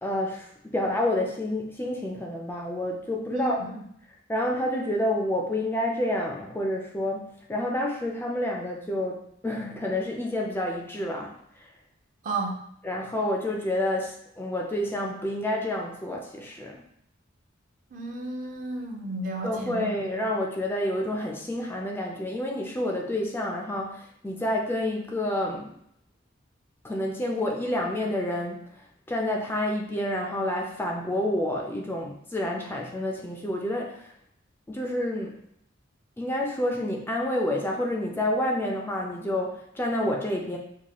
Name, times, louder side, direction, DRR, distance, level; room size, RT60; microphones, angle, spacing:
voice 1, 0.0-3.6 4.3-11.7 12.8-16.8 19.4-25.7 26.8-28.6 29.1-34.1 34.7-35.4 36.2-40.6, left 1 dB, 10° left, 0 dB, 0.4 m, -29 dB
voice 2, 3.3-3.8 12.2-12.6 17.9-20.2, right 2 dB, 45° right, 1 dB, 0.6 m, -33 dB
4.6 x 2.2 x 2.9 m, 0.70 s
head